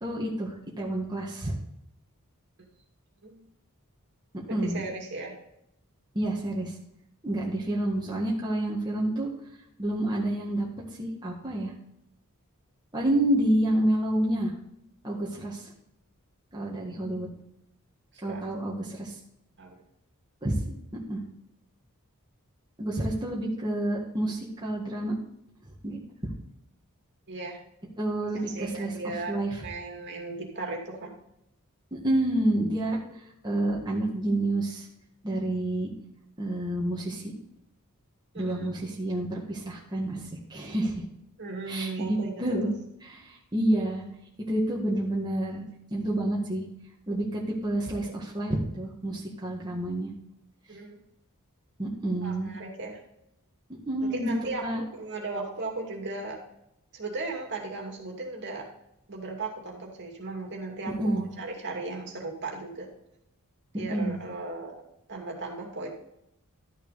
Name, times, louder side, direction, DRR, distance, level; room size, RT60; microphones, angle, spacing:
voice 1, 0.0-1.5 4.5-4.9 6.1-6.7 7.2-9.3 9.8-10.7 11.0-11.7 12.9-14.5 15.0-15.7 16.5-17.3 18.2-19.1 20.4-20.8 21.1-21.2 22.8-25.2 25.8-26.0 28.0-28.9 29.3-29.6 31.9-34.9 35.2-35.9 36.4-37.2 38.4-41.1 41.7-42.7 43.0-44.0 44.5-45.6 45.9-46.6 47.1-50.1 51.8-52.5 53.9-54.3 54.6-54.8 61.0-61.3 63.9-64.2, right 1 dB, 20° right, -4 dB, 1.8 m, -29 dB
voice 2, 4.5-5.3 18.3-18.4 19.6-19.8 27.3-27.6 28.3-29.3 29.6-31.1 38.3-38.7 41.4-42.7 50.7-51.0 52.2-53.0 54.0-56.4 56.9-58.6 59.1-62.9 63.7-64.8 65.1-65.9, right 3 dB, 55° right, 0 dB, 2.5 m, -36 dB
12.5 x 6.5 x 4.1 m, 0.78 s
head